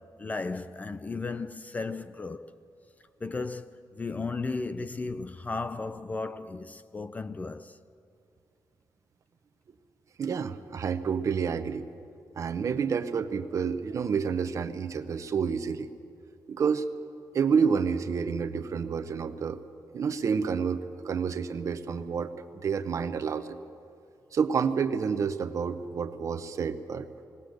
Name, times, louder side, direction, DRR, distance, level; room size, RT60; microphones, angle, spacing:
voice 1, 0.0-2.5 3.2-7.8, left 3 dB, 20° left, 0.4 m, -35 dB
voice 2, 10.2-11.8 12.4-15.9 16.5-16.8 17.3-19.6 19.9-23.6 24.3-27.2, right 6 dB, 45° right, 0.8 m, -29 dB
20.5 x 18.0 x 7.9 m
wide cardioid pair, 175°, 7 cm